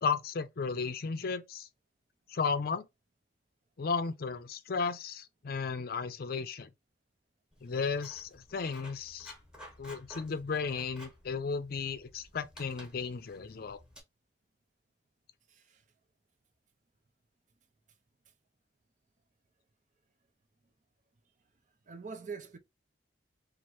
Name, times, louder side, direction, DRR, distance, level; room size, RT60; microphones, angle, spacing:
voice 1, 0.0-1.7 2.3-2.9 3.8-6.7 7.6-9.3 9.8-13.8, left 5 dB, 55° left, 0.5 m, -34 dB
Writing, 7.5-14.0, equal, 5° right, 1.1 m, -54 dB
voice 2, 15.5-15.8 21.9-22.6, right 5 dB, 45° right, 0.6 m, -43 dB
3.0 x 2.5 x 4.3 m
head